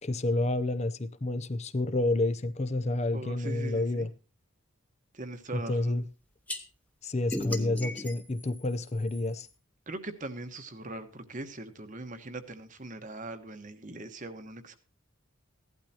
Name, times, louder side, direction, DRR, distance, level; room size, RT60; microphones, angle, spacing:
voice 1, 0.0-4.1 5.5-6.0 7.0-9.5, left 2 dB, 30° left, 0.6 m, -29 dB
voice 2, 3.1-4.1 5.1-5.9 9.9-14.8, right 2 dB, 35° right, 1.2 m, -41 dB
sound 1, 6.5-6.6 7.3-9.5, left 1 dB, 5° left, 1.1 m, -37 dB
16.0 x 12.0 x 2.9 m
head